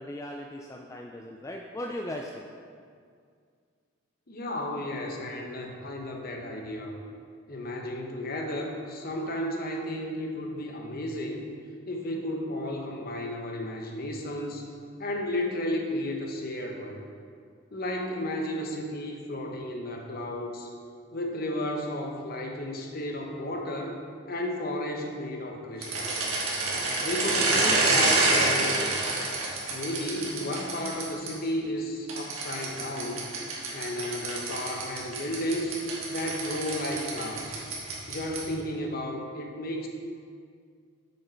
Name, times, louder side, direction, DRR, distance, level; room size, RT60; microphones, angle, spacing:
voice 1, 0.0-2.5, left 1 dB, 15° left, 0 dB, 0.3 m, -38 dB
voice 2, 4.3-6.9 7.5-11.4 11.9-14.7 15.0-17.0 17.7-20.7 21.1-23.9 24.3-26.2 27.0-29.0 29.7-33.3 33.7-35.8 36.1-37.6 38.1-39.9, left 1 dB, 45° left, 2 dB, 0.9 m, -33 dB
sound 1, 25.8-31.3 32.1-38.6, right 2 dB, 85° right, 1.6 m, -28 dB
7.5 x 5.5 x 4.4 m, 2.2 s
head